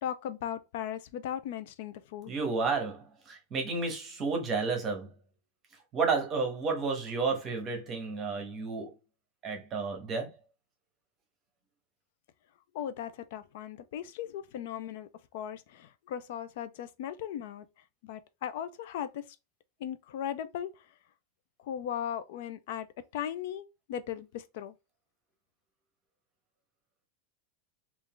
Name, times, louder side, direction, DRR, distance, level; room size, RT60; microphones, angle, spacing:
voice 1, 0.0-2.3 12.7-17.7 18.0-19.3 19.8-20.9 21.6-22.9 23.1-24.7, left 10 dB, 55° left, 0.4 m, -37 dB
voice 2, 2.3-5.1 5.9-9.0 9.4-10.4, right 4 dB, 20° right, 0.9 m, -31 dB
3.3 x 2.5 x 3.7 m
supercardioid pair, 180°, 0 cm